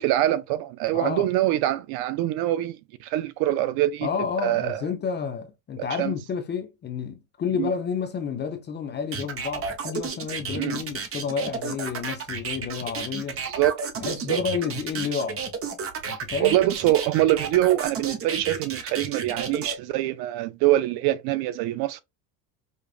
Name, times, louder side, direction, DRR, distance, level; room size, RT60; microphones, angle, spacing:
voice 1, 0.0-4.1 4.4-4.9 5.8-6.1 7.6-7.7 10.6-10.8 13.4-14.4 16.1-22.0, right 14 dB, 55° right, 0.5 m, -24 dB
voice 2, 0.9-1.3 4.0-13.4 14.0-15.4 16.1-16.6, left 6 dB, 25° left, 0.5 m, -30 dB
sound 1, 9.1-19.7, right 5 dB, 30° right, 0.8 m, -32 dB
5.1 x 2.4 x 2.4 m
supercardioid pair, 125°, 48 cm